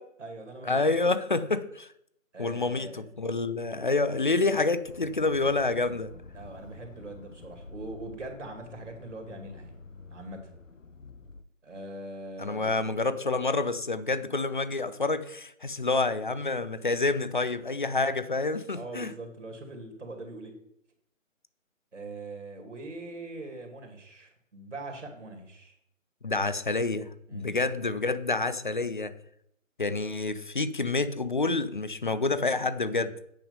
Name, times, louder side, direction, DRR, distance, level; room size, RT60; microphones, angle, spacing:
voice 1, 0.0-0.9 2.3-3.0 6.3-9.7 10.1-10.5 11.6-12.9 18.7-20.6 21.9-25.8 27.3-27.6, right 2 dB, 60° right, 3 dB, 2.4 m, -42 dB
voice 2, 0.6-1.9 2.4-6.1 12.4-19.1 26.2-29.2 29.8-33.1, left 3 dB, 40° left, 14 dB, 0.5 m, -28 dB
Accelerating revving vroom, 4.8-11.4, left 3 dB, 70° left, 1.0 m, -48 dB
9.0 x 5.5 x 5.4 m, 0.73 s
figure-of-eight pair, 150°, 40 cm